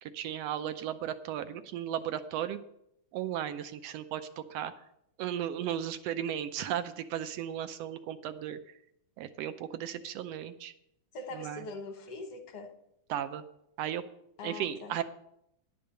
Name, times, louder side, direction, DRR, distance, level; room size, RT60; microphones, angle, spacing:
voice 1, 0.0-2.6 3.1-4.7 5.2-8.8 9.2-10.7 11.3-11.7 13.1-13.4 13.8-14.0 14.4-15.0, right 10 dB, 75° right, 10 dB, 1.6 m, -35 dB
voice 2, 11.1-12.7 14.4-14.9, left 2 dB, 60° left, 5 dB, 1.9 m, -42 dB
11.0 x 5.3 x 7.9 m, 0.77 s
omnidirectional pair, 3.3 m